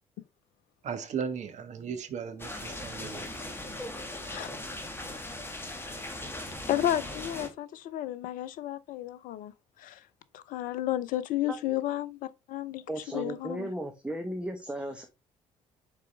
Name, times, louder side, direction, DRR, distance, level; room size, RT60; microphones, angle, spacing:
voice 1, 0.8-3.2, right 7 dB, 50° right, 1.3 m, -36 dB
sound 1, 2.4-7.5, left 1 dB, 15° left, 1.8 m, -39 dB
voice 2, 6.7-9.5 9.8-10.0 10.3-12.8 13.1-13.7, left 13 dB, 60° left, 0.6 m, -32 dB
voice 3, 12.9-15.0, right 1 dB, 5° right, 1.2 m, -35 dB
6.8 x 4.8 x 3.4 m
figure-of-eight pair, 45°, 16 cm